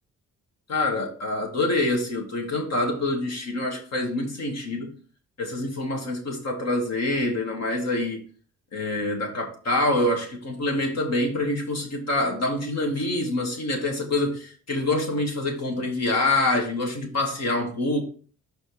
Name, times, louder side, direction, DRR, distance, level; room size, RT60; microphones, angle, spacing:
voice 1, 0.7-4.9 5.4-8.2 8.7-18.0, left 2 dB, 60° left, 2.2 m, -26 dB
5.6 x 5.1 x 4.9 m
cardioid pair, 90°, 30 cm